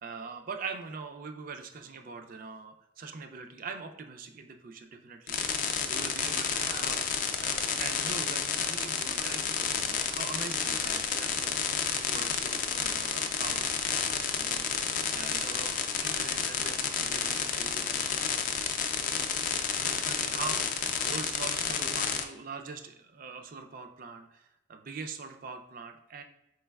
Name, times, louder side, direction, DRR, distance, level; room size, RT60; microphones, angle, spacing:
voice 1, 0.0-13.7 14.3-14.7 15.1-18.2 19.7-26.2, right 4 dB, 50° right, 7 dB, 0.4 m, -43 dB
sound 1, 5.3-22.2, left 7 dB, 45° left, 0.4 m, -30 dB
4.5 x 3.2 x 2.3 m, 0.89 s
head